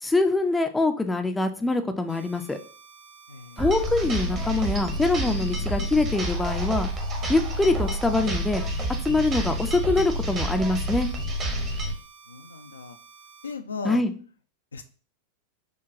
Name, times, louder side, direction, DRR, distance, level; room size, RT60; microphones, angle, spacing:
voice 1, 0.0-2.6 3.6-6.9 7.3-8.6 9.0-11.1 13.8-14.1, left 2 dB, 5° left, 7 dB, 0.4 m, -24 dB
sound 1, 2.1-13.5, right 5 dB, 60° right, 1.4 m, -51 dB
voice 2, 3.3-3.7 11.5-11.7 12.3-13.0 13.4-14.0 14.7-14.8, left 4 dB, 75° left, 7 dB, 0.4 m, -37 dB
sound 2, 3.6-11.9, equal, 30° right, 0.9 m, -29 dB
5.8 x 2.2 x 2.6 m, 0.39 s
figure-of-eight pair, 90°, 0 cm